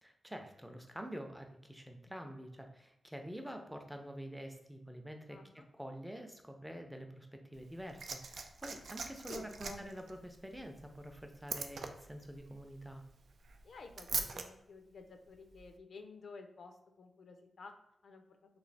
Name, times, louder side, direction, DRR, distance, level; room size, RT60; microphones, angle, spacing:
voice 1, 0.0-13.0, equal, 5° right, 4 dB, 0.5 m, -47 dB
voice 2, 5.3-5.7 9.3-9.8 13.6-17.7 18.0-18.4, left 4 dB, 65° left, 5 dB, 0.4 m, -52 dB
Liquid, 7.5-14.5 15.5-15.6, right 4 dB, 70° right, 0.3 m, -43 dB
3.2 x 2.7 x 3.9 m, 0.83 s
wide cardioid pair, 95°, 0 cm